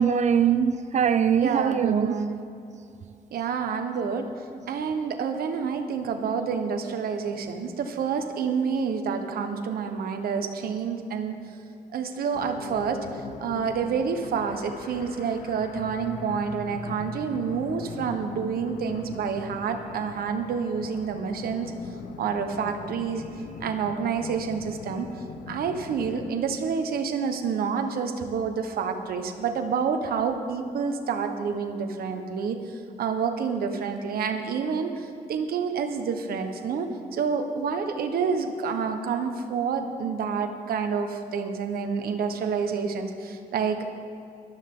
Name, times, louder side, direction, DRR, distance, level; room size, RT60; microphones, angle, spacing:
voice 1, 0.0-2.2, right 7 dB, 50° right, 0.6 m, -22 dB
voice 2, 1.4-2.5 3.3-4.3 4.7-11.3 11.9-13.0 13.4-21.7 22.2-23.2 23.6-25.1 25.5-32.6 33.0-43.8, right 6 dB, 75° right, 1.3 m, -28 dB
sound 1, 12.3-26.3, left 5 dB, 75° left, 0.9 m, -41 dB
20.0 x 13.0 x 3.9 m
cardioid pair, 120°, 15 cm